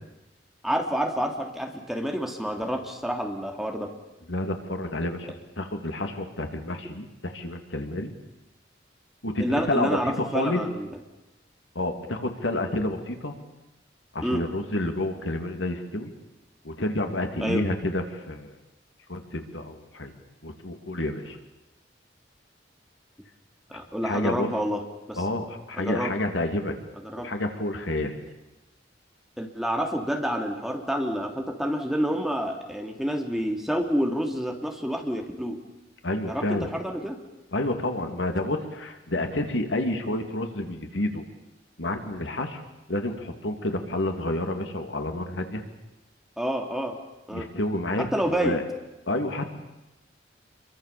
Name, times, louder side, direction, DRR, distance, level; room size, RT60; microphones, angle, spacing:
voice 1, 0.6-3.9 9.4-11.0 14.2-14.4 17.4-17.6 23.7-24.8 25.1-25.2 25.7-26.1 27.0-27.3 29.4-35.6 36.2-37.2 46.4-47.0 47.3-47.5 48.0-48.6, equal, ahead, 2 dB, 2.8 m, -28 dB
voice 2, 4.3-8.1 9.2-10.6 11.7-13.3 14.1-16.1 16.6-18.5 19.1-20.1 20.4-21.4 24.0-24.5 25.2-26.7 27.2-28.1 36.0-36.7 37.5-41.2 41.8-42.6 42.9-45.6 47.3-48.6 49.1-49.5, left 1 dB, 85° left, 5 dB, 2.9 m, -29 dB
27.5 x 23.0 x 7.1 m, 0.98 s
head